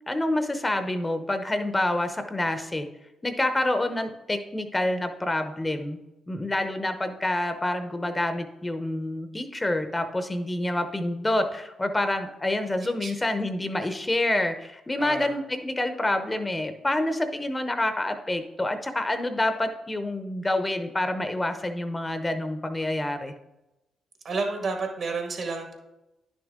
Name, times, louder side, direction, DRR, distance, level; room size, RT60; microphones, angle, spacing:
voice 1, 0.1-2.9 3.2-6.0 6.3-23.3, left 1 dB, 20° left, 8 dB, 0.8 m, -27 dB
voice 2, 15.0-15.3 24.2-25.7, right 3 dB, 60° right, 3 dB, 1.8 m, -30 dB
10.0 x 6.3 x 3.7 m, 0.96 s
cardioid pair, 70°, 0 cm